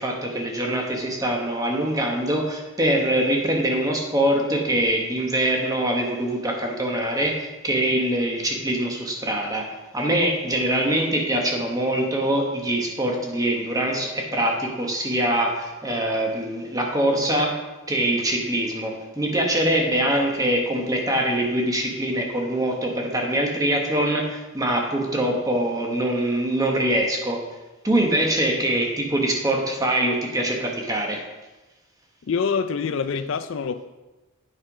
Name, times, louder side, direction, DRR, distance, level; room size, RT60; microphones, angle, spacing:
voice 1, 0.0-9.7 9.9-17.6 17.9-27.4 27.8-31.2, right 1 dB, 15° right, 1 dB, 1.2 m, -23 dB
voice 2, 32.2-33.8, left 5 dB, 60° left, 11 dB, 0.4 m, -25 dB
8.8 x 5.8 x 4.9 m, 1.1 s
head